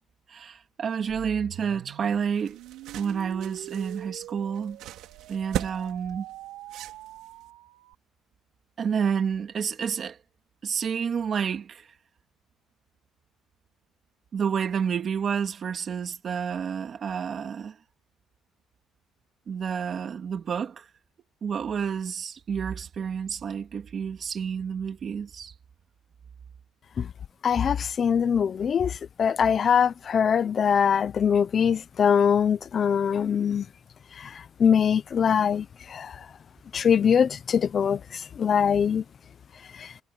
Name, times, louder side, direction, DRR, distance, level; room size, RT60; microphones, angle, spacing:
voice 1, 0.3-2.6 2.9-4.8 5.3-6.2 8.8-10.2 10.6-11.9 14.3-17.8 19.5-20.9 21.4-25.5, right 7 dB, 35° right, 2.9 m, -29 dB
sound 1, 1.1-7.9, right 16 dB, 85° right, 4.9 m, -44 dB
sound 2, 2.1-7.5, right 13 dB, 70° right, 3.6 m, -39 dB
voice 2, 27.4-28.9 29.2-33.7 34.2-34.3 34.6-36.1 36.7-38.0 38.4-39.0 39.8-39.9, left 7 dB, 35° left, 0.7 m, -22 dB
cardioid pair, 160°, 0 cm